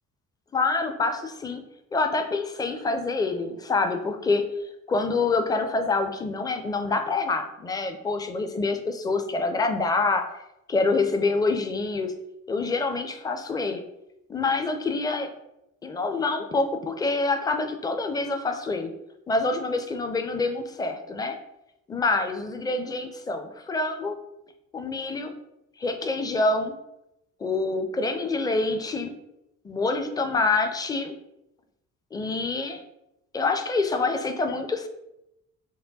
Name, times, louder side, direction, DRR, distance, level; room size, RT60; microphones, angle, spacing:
voice 1, 0.5-1.6 1.9-4.4 4.9-10.3 10.7-12.1 12.5-13.8 14.3-15.3 15.8-18.9 19.3-21.4 21.9-24.1 24.7-25.3 25.8-26.7 27.4-29.2 29.6-31.1 32.1-32.8 33.3-34.9, left 3 dB, 10° left, 6 dB, 0.4 m, -26 dB
4.9 x 2.1 x 3.9 m, 0.87 s
figure-of-eight pair, 50°, 44 cm